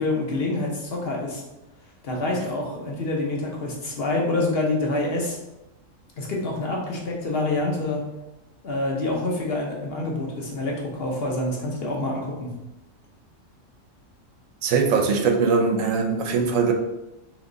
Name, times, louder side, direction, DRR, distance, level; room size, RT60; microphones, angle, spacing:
voice 1, 0.0-1.4 2.0-5.4 6.2-8.0 8.6-12.5, left 2 dB, 55° left, -1 dB, 1.0 m, -26 dB
voice 2, 14.6-16.7, right 5 dB, 85° right, 4 dB, 1.0 m, -21 dB
3.5 x 3.1 x 3.8 m, 0.96 s
omnidirectional pair, 1.3 m